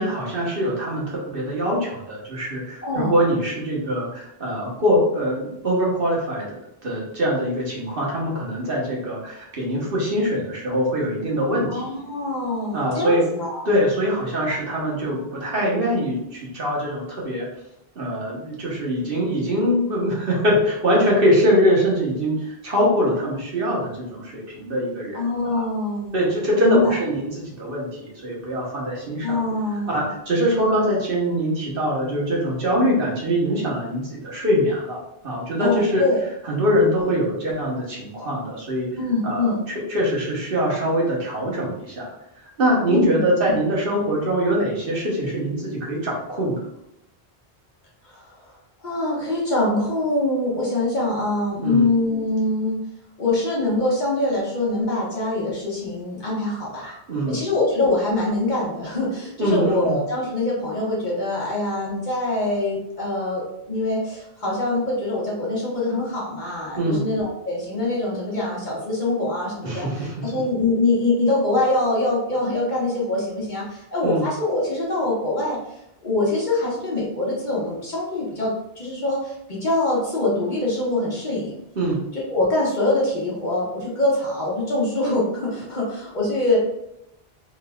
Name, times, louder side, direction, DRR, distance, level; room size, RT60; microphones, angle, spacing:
voice 1, 0.0-11.8 12.7-13.3 13.6-17.5 17.9-25.2 25.5-25.6 26.1-29.4 29.9-36.0 36.5-38.9 39.2-42.0 42.4-46.5 51.6-51.9 57.1-57.4 59.4-60.0 66.8-67.0 69.6-70.1 74.0-74.2 81.8-82.0, equal, 65° right, -4 dB, 1.3 m, -23 dB
voice 2, 2.8-3.1 11.7-13.7 25.1-26.3 26.6-26.9 29.2-30.1 35.6-36.2 39.0-39.6 42.9-43.0 43.5-43.6 48.0-48.5 48.8-52.8 53.2-57.0 57.3-75.6 76.0-81.6 82.1-86.6, left 2 dB, 50° left, -5 dB, 1.3 m, -24 dB
3.9 x 3.6 x 2.3 m, 0.85 s
omnidirectional pair, 1.0 m